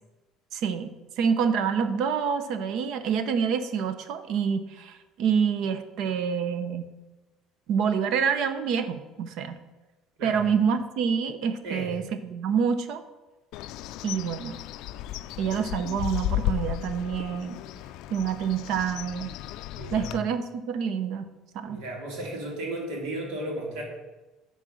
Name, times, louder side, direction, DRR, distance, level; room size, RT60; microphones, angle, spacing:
voice 1, 0.5-0.9 1.2-6.9 7.7-9.6 10.2-13.0 14.0-14.5 15.4-17.6 18.1-19.4 19.9-21.3 21.5-21.8, right 7 dB, 60° right, 10 dB, 0.7 m, -27 dB
Bird, 13.5-20.2, left 13 dB, 65° left, 0.3 m, -34 dB
voice 2, 19.7-20.2 21.6-23.8, right 1 dB, 85° right, -1 dB, 2.7 m, -34 dB
9.6 x 4.0 x 6.3 m, 1.1 s
cardioid pair, 155°, 0 cm